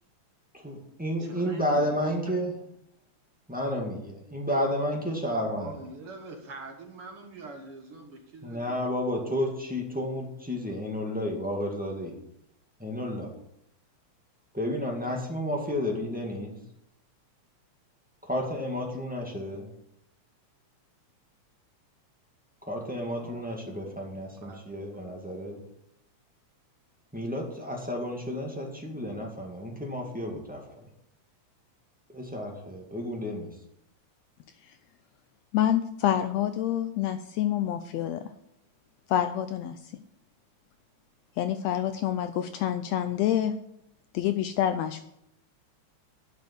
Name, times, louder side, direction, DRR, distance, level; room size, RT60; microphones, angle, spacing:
voice 1, 0.5-2.5 3.5-5.8 8.4-12.2 12.8-13.3 14.5-16.6 18.2-19.7 22.7-25.6 27.1-30.9 32.1-33.5, equal, 5° right, 0 dB, 1.4 m, -31 dB
voice 2, 1.2-2.3 5.3-8.8 23.2-23.4 23.9-24.0 24.4-24.6, right 3 dB, 55° right, 3 dB, 1.9 m, -43 dB
voice 3, 35.5-38.2 39.1-39.9 41.4-43.6 44.1-45.0, left 11 dB, 80° left, 10 dB, 1.6 m, -27 dB
10.5 x 6.5 x 8.0 m, 0.77 s
omnidirectional pair, 3.5 m